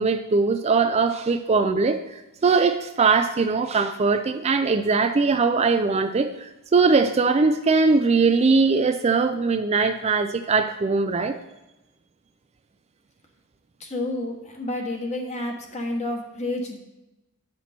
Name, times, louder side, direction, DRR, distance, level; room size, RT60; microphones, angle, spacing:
voice 1, 0.0-2.0 2.4-11.4, right 4 dB, 30° right, 8 dB, 0.4 m, -21 dB
voice 2, 13.8-16.8, left 1 dB, 30° left, 2 dB, 1.3 m, -30 dB
9.6 x 6.0 x 4.3 m, 0.98 s
head